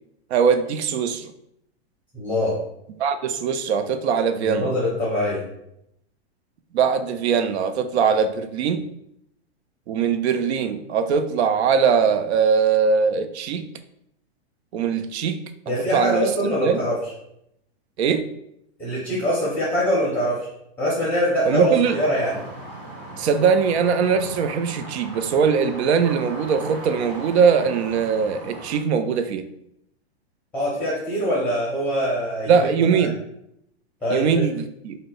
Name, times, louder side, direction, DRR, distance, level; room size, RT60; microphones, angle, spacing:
voice 1, 0.3-1.3 3.0-4.7 6.7-8.8 9.9-13.7 14.7-15.4 15.7-16.8 18.0-18.3 21.5-22.0 23.2-29.4 32.5-33.2 34.1-35.0, right 6 dB, 85° right, 10 dB, 0.5 m, -21 dB
voice 2, 2.1-2.6 4.4-5.4 15.7-17.0 18.8-20.5 20.8-22.3 30.5-32.7 33.0-33.1 34.0-34.4, equal, 5° left, -8 dB, 0.5 m, -23 dB
sound 1, 21.7-28.8, right 1 dB, 40° right, 0.9 m, -38 dB
2.7 x 2.1 x 4.0 m, 0.77 s
hypercardioid pair, 150°, 32 cm